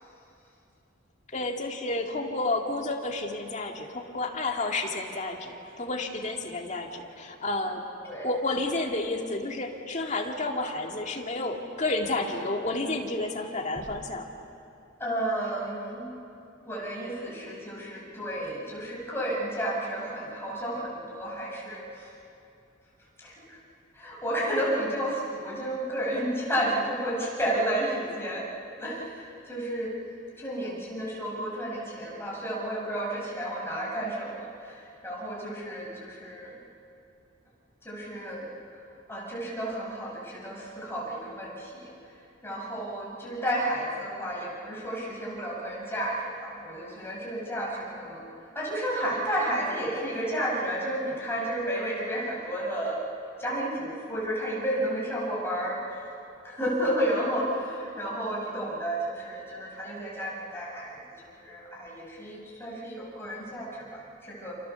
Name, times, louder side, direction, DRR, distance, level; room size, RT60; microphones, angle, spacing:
voice 1, 1.3-7.8 8.2-14.3, left 2 dB, 35° left, 2 dB, 2.3 m, -31 dB
voice 2, 15.0-16.1 16.6-22.1 23.2-23.6 23.9-28.5 28.8-30.0 30.4-36.6 37.8-38.5 39.1-41.9 42.4-48.2 48.5-53.0 53.4-55.8 56.4-64.5, right 1 dB, 10° left, -4 dB, 6.9 m, -32 dB
28.5 x 28.5 x 7.0 m, 2.6 s
head